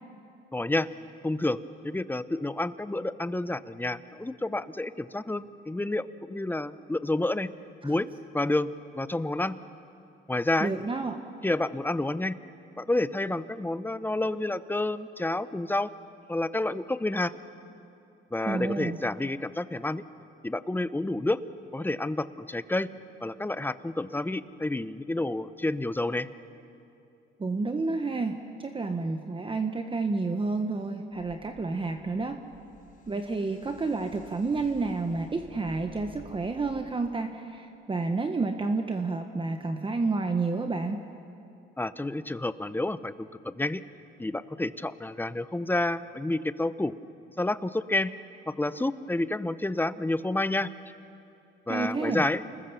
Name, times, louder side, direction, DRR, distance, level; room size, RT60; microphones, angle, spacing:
voice 1, 0.5-0.9 1.2-7.5 7.8-8.1 8.3-9.6 10.3-10.7 11.4-12.4 12.8-15.9 16.3-17.3 18.3-20.0 20.4-21.4 21.7-22.9 23.2-26.3 41.8-43.8 44.2-46.9 47.4-48.1 48.5-50.9 51.7-52.4, left 2 dB, 10° left, 14 dB, 0.7 m, -29 dB
voice 2, 10.6-11.2 18.5-19.0 27.4-32.4 33.1-41.0 51.7-52.2, right 3 dB, 25° right, 6 dB, 1.2 m, -30 dB
sound 1, 31.1-36.8, left 3 dB, 45° left, 4.1 m, -53 dB
29.0 x 20.5 x 7.0 m, 2.7 s
cardioid pair, 90°, 20 cm